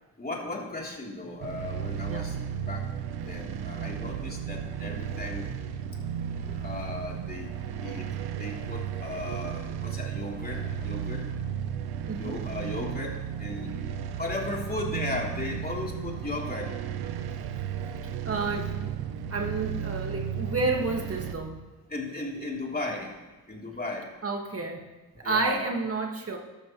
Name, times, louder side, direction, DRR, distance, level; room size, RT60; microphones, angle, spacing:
voice 1, 0.2-2.3 2.6-2.9 3.2-5.5 6.0-6.1 6.4-7.5 7.8-8.1 8.4-11.3 12.2-13.7 14.2-16.9 19.2-19.3 21.9-23.1 23.5-24.1 25.2-25.6, left 2 dB, 25° left, -2 dB, 3.3 m, -36 dB
sound 1, 1.4-21.3, right 8 dB, 90° right, 0.9 m, -34 dB
voice 2, 12.1-12.4 18.2-19.0 19.3-21.6 24.2-24.8 25.2-26.4, right 3 dB, 40° right, 1 dB, 1.8 m, -30 dB
13.5 x 12.5 x 3.1 m, 1.2 s
supercardioid pair, 60°, 37 cm